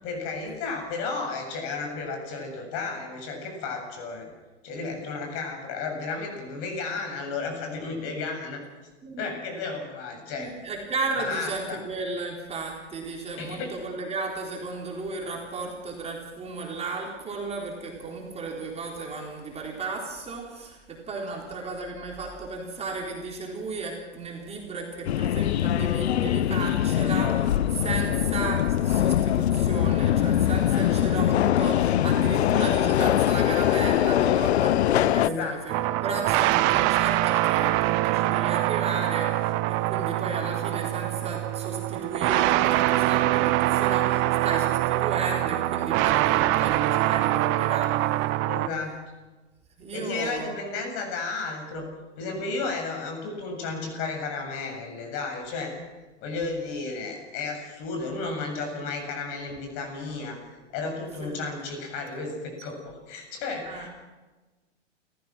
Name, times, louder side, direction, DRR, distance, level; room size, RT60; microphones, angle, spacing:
voice 1, 0.0-4.3 4.6-8.6 9.2-10.5 11.2-11.8 13.4-13.8 21.3-21.4 30.7-30.8 35.2-35.6 48.4-49.0 49.9-51.9 52.2-55.7 56.2-60.4 60.7-63.9, left 4 dB, 40° left, 3 dB, 7.6 m, -33 dB
voice 2, 10.4-48.3 49.8-50.6 61.2-61.4 63.6-63.9, right 3 dB, 15° right, -1 dB, 3.9 m, -34 dB
Subway metro underground, 25.1-35.3, left 11 dB, 65° left, 0.9 m, -22 dB
sound 1, 35.7-48.7, right 16 dB, 35° right, 1.0 m, -24 dB
29.5 x 15.0 x 6.2 m, 1.2 s
hypercardioid pair, 115°, 36 cm